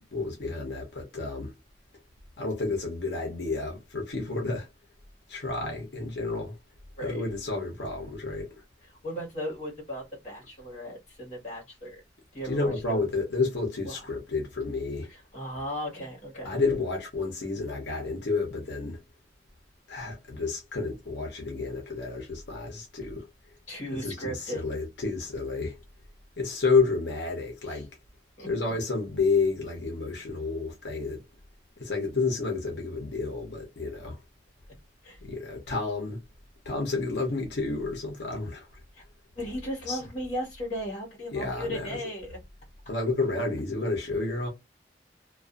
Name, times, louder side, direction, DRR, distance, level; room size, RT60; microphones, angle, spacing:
voice 1, 0.0-1.5 2.4-4.7 5.3-6.5 7.0-8.5 12.4-15.1 16.4-19.0 19.9-23.3 24.0-25.8 26.4-27.9 28.4-31.2 31.8-34.2 35.2-36.2 36.6-38.8 39.9-40.0 41.3-41.9 42.9-44.5, left 3 dB, 75° left, 0.8 m, -30 dB
voice 2, 9.0-12.0 12.3-13.0 13.8-14.1 15.1-16.6 23.7-24.6 27.6-27.9 28.4-28.7 35.0-35.2 38.9-39.0 39.3-42.4, equal, 40° left, 1.2 m, -36 dB
2.5 x 2.3 x 2.4 m
head